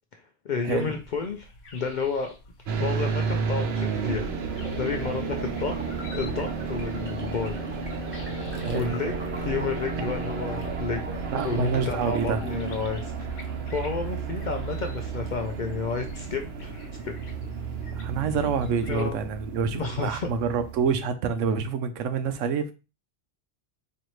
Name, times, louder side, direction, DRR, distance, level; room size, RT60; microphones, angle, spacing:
voice 1, 0.4-1.5 1.7-2.3 2.8-5.8 6.1-7.6 8.7-11.0 11.3-13.1 13.7-17.1 18.9-19.2 19.7-20.3, left 5 dB, 60° left, 0.5 m, -31 dB
sound 1, 0.7-19.1, left 2 dB, 90° left, 1.1 m, -50 dB
sound 2, 2.7-20.9, right 5 dB, 60° right, 0.8 m, -32 dB
sound 3, 4.6-12.7, right 1 dB, 10° right, 0.9 m, -39 dB
voice 2, 8.6-8.9 11.3-12.4 17.9-22.7, right 6 dB, 90° right, 1.0 m, -27 dB
4.2 x 2.8 x 3.0 m
omnidirectional pair, 1.2 m